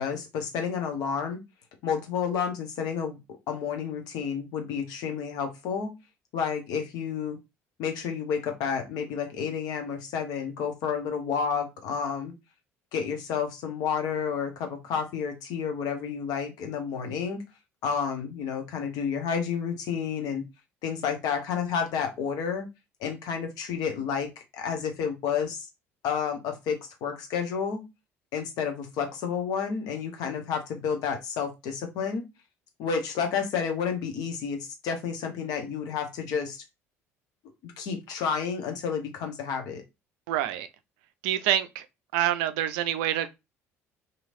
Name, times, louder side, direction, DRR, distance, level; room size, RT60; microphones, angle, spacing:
voice 1, 0.0-1.4 1.8-3.2 3.5-5.9 6.3-7.4 7.8-12.3 12.9-17.4 17.8-20.4 20.8-22.7 23.0-25.7 26.0-27.8 28.3-32.3 32.8-36.6 37.6-39.8, left 6 dB, 55° left, 0.8 m, -30 dB
voice 2, 40.3-40.7 41.2-41.9 42.1-43.3, right 12 dB, 60° right, 0.3 m, -26 dB
3.0 x 2.7 x 2.5 m
figure-of-eight pair, 55°, 8 cm